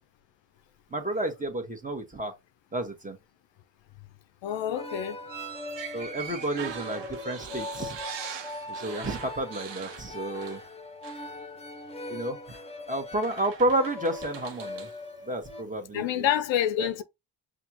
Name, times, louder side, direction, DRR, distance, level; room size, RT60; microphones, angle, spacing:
voice 1, 0.9-2.3 2.7-3.2 5.9-8.0 8.7-10.6 12.1-12.4 12.9-14.9 15.3-16.3 16.8-16.9, right 1 dB, 15° right, 1.4 m, -31 dB
voice 2, 4.4-5.2 15.9-17.0, left 10 dB, 70° left, 0.6 m, -27 dB
sound 1, 4.5-15.6, left 2 dB, 15° left, 0.9 m, -41 dB
sound 2, 5.3-10.8 11.0-11.3 12.5-12.6 13.2-15.0, right 8 dB, 60° right, 1.0 m, -42 dB
5.7 x 2.5 x 2.9 m
supercardioid pair, 60°, 47 cm